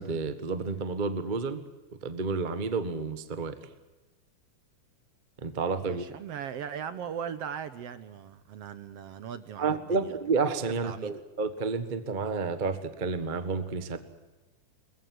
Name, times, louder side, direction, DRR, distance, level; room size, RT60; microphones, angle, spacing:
voice 1, 0.0-1.6 2.0-3.6 5.4-6.0 9.6-14.0, right 4 dB, 45° right, 10 dB, 0.6 m, -30 dB
voice 2, 5.8-10.2 10.8-11.1, right 8 dB, 65° right, 13 dB, 1.6 m, -39 dB
22.5 x 21.5 x 7.8 m, 1.1 s
omnidirectional pair, 3.6 m